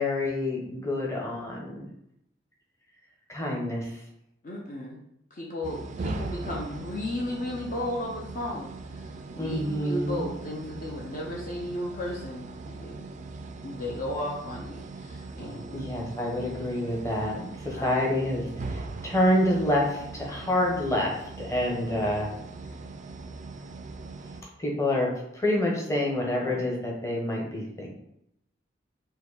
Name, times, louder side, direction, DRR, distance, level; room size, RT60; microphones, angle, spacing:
voice 1, 0.0-1.9 3.3-3.9 9.4-10.3 15.7-22.3 24.6-27.9, left 1 dB, 15° left, -2 dB, 0.9 m, -27 dB
voice 2, 4.4-5.0 5.3-13.0 13.6-15.8 17.7-17.9 26.5-26.6, left 1 dB, 45° left, -2 dB, 0.6 m, -35 dB
sound 1, 5.6-24.4, right 3 dB, 40° right, 0.3 m, -40 dB
4.5 x 2.7 x 3.9 m, 0.78 s
head